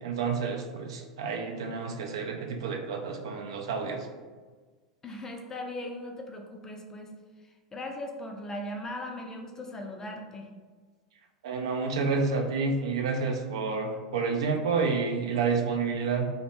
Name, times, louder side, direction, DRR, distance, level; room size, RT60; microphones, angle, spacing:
voice 1, 0.0-4.1 11.4-16.3, right 4 dB, 65° right, 3 dB, 0.3 m, -29 dB
voice 2, 5.0-7.1 7.4-10.5, left 1 dB, 20° left, 2 dB, 0.4 m, -39 dB
2.8 x 2.1 x 2.9 m, 1.4 s
figure-of-eight pair, 85°, 3 cm